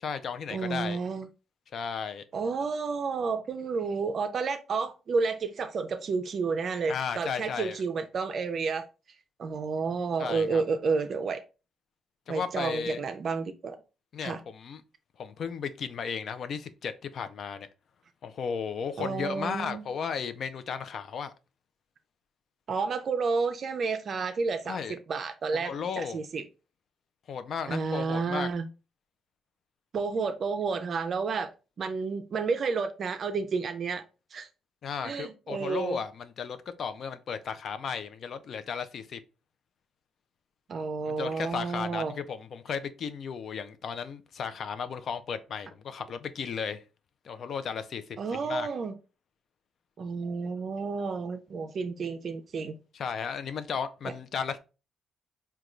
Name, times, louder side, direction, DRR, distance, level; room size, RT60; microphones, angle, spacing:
voice 1, 0.0-1.0 1.7-2.2 6.9-7.8 10.2-10.6 12.3-13.0 14.1-14.8 15.2-17.7 18.2-21.3 24.7-25.0 25.6-26.2 27.3-28.5 34.8-39.2 41.1-46.8 47.2-48.0 48.4-48.7 52.9-54.6, left 6 dB, 60° left, 0.4 m, -35 dB
voice 2, 0.5-1.3 2.3-8.9 9.4-11.4 12.3-13.8 14.2-14.4 19.0-19.8 22.7-26.4 27.7-28.7 29.9-31.5 31.8-34.0 34.3-34.5 35.0-36.0 40.7-42.1 48.2-48.9 50.0-52.8, right 4 dB, 50° right, 0.4 m, -31 dB
3.7 x 2.2 x 3.0 m
cardioid pair, 90°, 0 cm